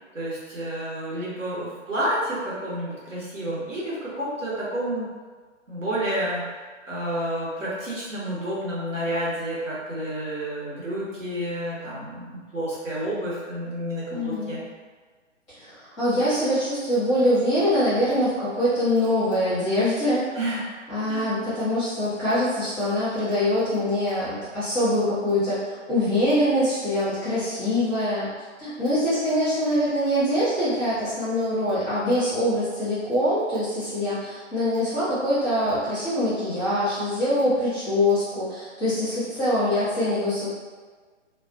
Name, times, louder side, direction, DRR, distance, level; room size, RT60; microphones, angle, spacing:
voice 1, 0.1-5.0 5.7-6.4 6.9-14.6 20.3-20.7 21.1-21.3, right 1 dB, 90° right, -7 dB, 1.1 m, -30 dB
voice 2, 14.1-14.6 15.6-20.3 20.9-28.3 28.6-40.5, left 1 dB, 5° left, -15 dB, 0.5 m, -24 dB
2.4 x 2.2 x 2.5 m, 1.4 s
figure-of-eight pair, 135°, 37 cm